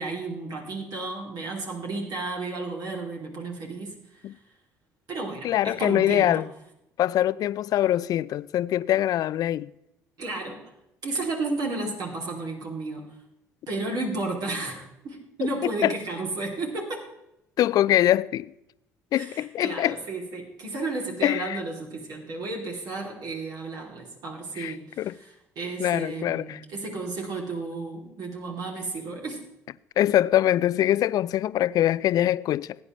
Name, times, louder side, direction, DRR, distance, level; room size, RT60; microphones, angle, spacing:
voice 1, 0.0-4.2 5.1-6.4 10.2-10.7 11.0-13.1 13.7-17.0 19.1-29.4, right 3 dB, 60° right, 2.8 m, -33 dB
voice 2, 5.4-6.4 7.0-9.7 11.8-11.9 15.6-15.9 17.6-18.5 19.1-20.0 21.2-21.6 24.6-25.2 25.8-26.6 30.0-32.8, left 12 dB, 55° left, 0.3 m, -23 dB
18.0 x 9.6 x 3.1 m
hypercardioid pair, 55°, 8 cm